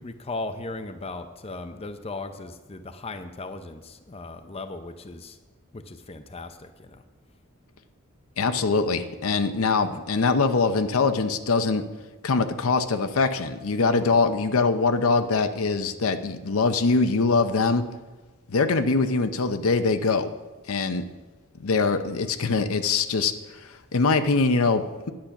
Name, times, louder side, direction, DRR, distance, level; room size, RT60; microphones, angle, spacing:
voice 1, 0.0-5.4 5.7-7.0, left 2 dB, 30° left, 8 dB, 0.6 m, -37 dB
voice 2, 8.4-11.8 12.2-17.8 18.5-20.3 20.7-21.0 21.6-23.3 23.6-25.1, left 4 dB, 75° left, 9 dB, 0.7 m, -23 dB
10.5 x 8.5 x 5.9 m, 1.2 s
head